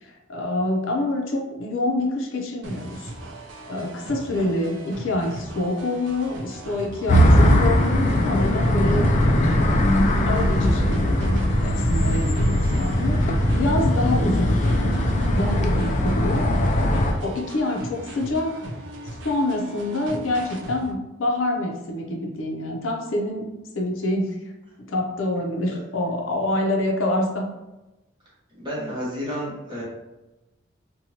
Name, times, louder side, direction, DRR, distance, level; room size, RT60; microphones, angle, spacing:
voice 1, 0.0-3.1 3.7-9.1 10.3-15.0 15.3-16.6 17.2-18.6 19.2-23.5 23.7-24.4 24.8-27.5, left 1 dB, 85° left, 0 dB, 0.6 m, -26 dB
sound 1, 2.6-20.9, right 1 dB, 65° right, 0.5 m, -38 dB
sound 2, 7.1-17.1, equal, 40° left, 0.3 m, -20 dB
voice 2, 28.5-29.8, equal, 25° right, -8 dB, 1.1 m, -31 dB
2.8 x 2.2 x 2.7 m, 1.0 s
head